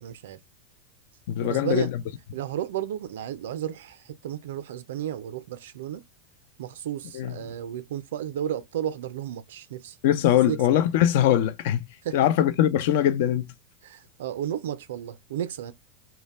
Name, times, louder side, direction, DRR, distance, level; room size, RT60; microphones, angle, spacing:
voice 1, 0.0-0.4 1.4-1.9 2.3-6.0 6.6-10.0 10.5-10.6 12.0-12.2 13.8-15.7, right 10 dB, 70° right, 0.4 m, -33 dB
voice 2, 1.3-2.0 7.1-7.3 10.0-11.8 12.1-13.5, left 11 dB, 60° left, 0.3 m, -22 dB
2.2 x 2.1 x 3.3 m
hypercardioid pair, 95°, 0 cm